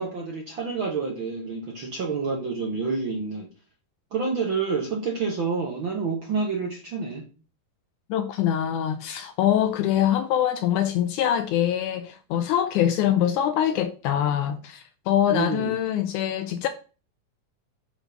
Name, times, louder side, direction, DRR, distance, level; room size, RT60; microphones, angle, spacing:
voice 1, 0.0-3.5 4.1-7.2 15.3-15.7, right 4 dB, 65° right, 1.2 m, -28 dB
voice 2, 8.1-16.7, left 10 dB, 80° left, 1.8 m, -24 dB
7.1 x 4.0 x 5.8 m
omnidirectional pair, 3.9 m